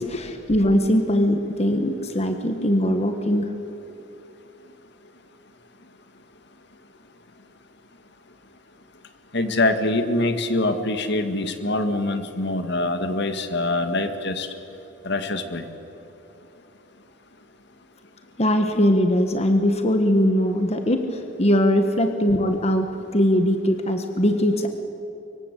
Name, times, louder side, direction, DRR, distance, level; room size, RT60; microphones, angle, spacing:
voice 1, 0.0-3.5 18.4-24.7, equal, 35° left, 6 dB, 1.5 m, -21 dB
voice 2, 9.3-14.5 15.0-15.6, left 2 dB, 60° left, 8 dB, 2.0 m, -24 dB
25.0 x 23.0 x 8.4 m, 2.9 s
head